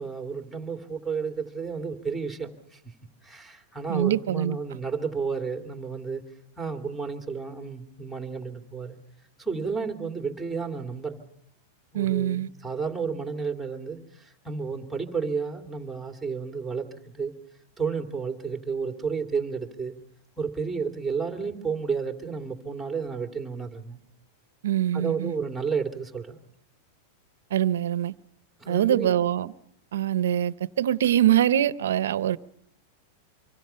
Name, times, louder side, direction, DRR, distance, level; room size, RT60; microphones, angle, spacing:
voice 1, 0.0-2.8 3.2-6.2 6.6-9.0 9.4-11.2 11.9-17.3 17.8-20.0 20.4-24.0 24.9-26.4 28.6-29.3, right 5 dB, ahead, 2.6 m, -32 dB
voice 2, 3.9-4.6 11.9-12.5 24.6-25.3 27.5-28.1 28.7-29.5 29.9-32.4, right 11 dB, 90° right, 0.8 m, -24 dB
25.5 x 24.5 x 5.7 m
supercardioid pair, 145°, 0 cm